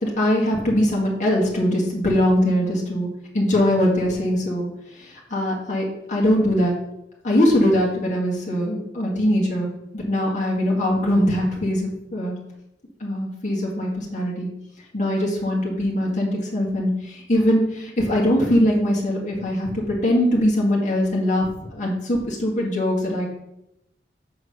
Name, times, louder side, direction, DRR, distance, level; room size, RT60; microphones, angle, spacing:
voice 1, 0.0-3.1 3.3-4.7 5.0-6.7 7.2-12.4 13.0-14.5 14.9-23.3, equal, 45° left, -3 dB, 2.0 m, -21 dB
7.1 x 4.8 x 5.9 m, 0.82 s
head